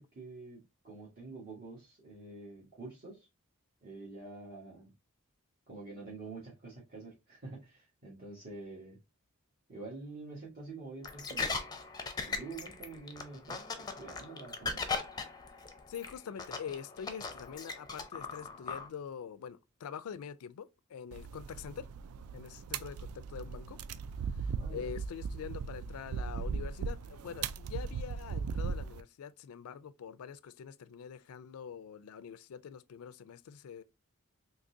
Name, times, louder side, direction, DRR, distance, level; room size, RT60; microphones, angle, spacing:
voice 1, 0.0-3.3 3.8-4.9 5.7-9.0 9.7-11.6 12.2-14.8 24.6-24.9, right 3 dB, 45° right, 1.3 m, -47 dB
sound 1, 11.0-18.9, left 4 dB, 20° left, 0.5 m, -39 dB
voice 2, 15.9-21.9 22.3-23.8 24.3-33.8, left 7 dB, 80° left, 0.4 m, -45 dB
sound 2, 21.1-29.0, right 5 dB, 80° right, 0.3 m, -38 dB
3.8 x 2.8 x 2.6 m
head